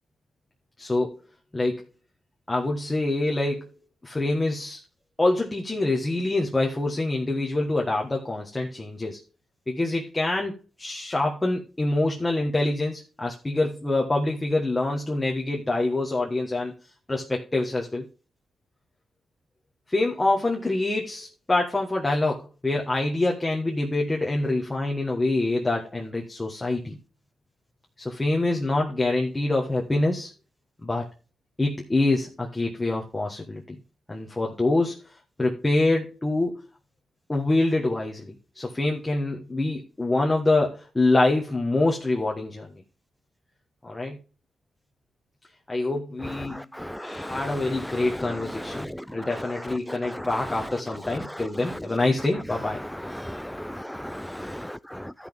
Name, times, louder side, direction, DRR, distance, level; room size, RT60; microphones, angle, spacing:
voice 1, 0.8-1.2 1.5-1.8 2.5-3.7 4.0-4.8 5.2-9.2 9.7-16.7 17.1-18.1 19.9-27.0 28.0-30.3 30.8-31.0 31.6-33.6 34.1-35.0 35.4-36.6 37.3-42.7 43.8-44.2 45.7-46.6 47.0-52.8, left 2 dB, 20° left, 1.5 m, -25 dB
voice 2, 46.4-49.5 49.9-50.4 51.1-51.8 52.8-55.1, equal, 5° left, 0.4 m, -36 dB
13.0 x 6.0 x 3.6 m
cardioid pair, 75°, 0 cm